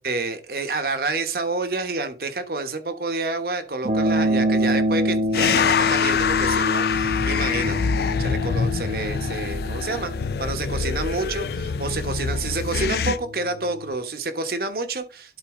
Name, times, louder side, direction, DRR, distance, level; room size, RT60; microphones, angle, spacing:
voice 1, 0.0-7.8 8.2-10.1 10.4-15.4, right 3 dB, 55° right, 1.1 m, -28 dB
sound 1, 3.8-13.9, left 1 dB, 35° right, 0.7 m, -27 dB
sound 2, 5.3-13.2, left 5 dB, 60° left, 0.4 m, -25 dB
12.0 x 4.1 x 3.7 m
head